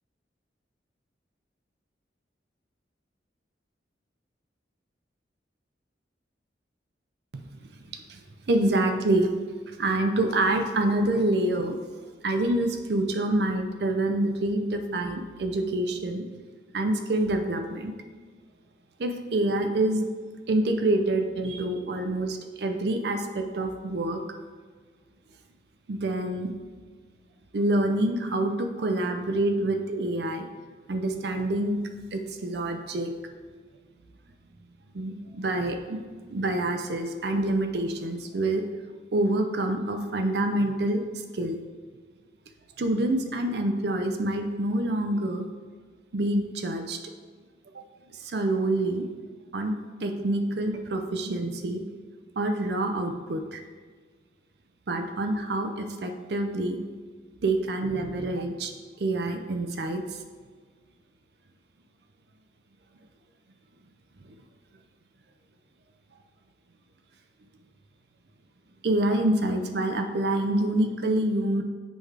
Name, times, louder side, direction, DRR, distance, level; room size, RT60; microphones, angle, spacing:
voice 1, 7.3-7.7 7.9-8.2 8.5-9.4 9.7-11.7 12.2-16.2 16.7-17.9 19.0-20.1 20.5-24.2 25.9-26.5 27.5-30.5 30.9-31.8 32.1-33.1 34.9-36.0 36.3-38.6 39.1-41.0 41.3-41.6 42.8-45.5 46.1-47.0 48.1-49.0 49.5-51.8 52.4-53.6 54.9-56.8 57.4-58.7 59.0-60.2 68.8-71.6, right 1 dB, 60° right, 5 dB, 0.5 m, -26 dB
7.7 x 3.3 x 4.6 m, 1.5 s
head